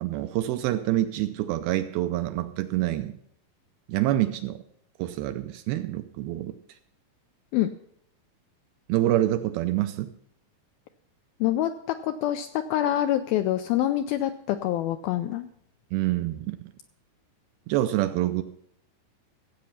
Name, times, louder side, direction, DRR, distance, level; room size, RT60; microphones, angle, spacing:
voice 1, 0.0-3.2 3.9-4.6 5.0-6.6 8.9-10.1 15.9-16.6 17.7-18.4, right 14 dB, 80° right, 9 dB, 2.3 m, -26 dB
voice 2, 11.4-15.5, left 12 dB, 85° left, 8 dB, 2.1 m, -26 dB
15.5 x 8.2 x 5.7 m, 0.69 s
omnidirectional pair, 4.8 m